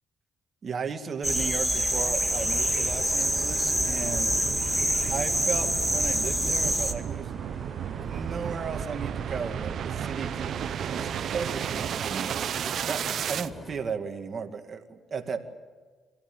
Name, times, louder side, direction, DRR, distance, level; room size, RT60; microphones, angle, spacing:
voice 1, 0.6-4.3 5.1-7.4 8.0-10.5 10.8-11.1 11.3-12.3 12.8-13.0 13.3-15.4, right 5 dB, 45° right, 5 dB, 2.2 m, -35 dB
sound 1, 1.2-6.9, equal, ahead, 2.7 m, -26 dB
sound 2, 1.9-13.8, equal, 20° left, 6.7 m, -45 dB
sound 3, 2.0-13.5, right 9 dB, 65° right, 0.8 m, -34 dB
27.5 x 17.0 x 9.0 m, 1.4 s
cardioid pair, 90°, 0 cm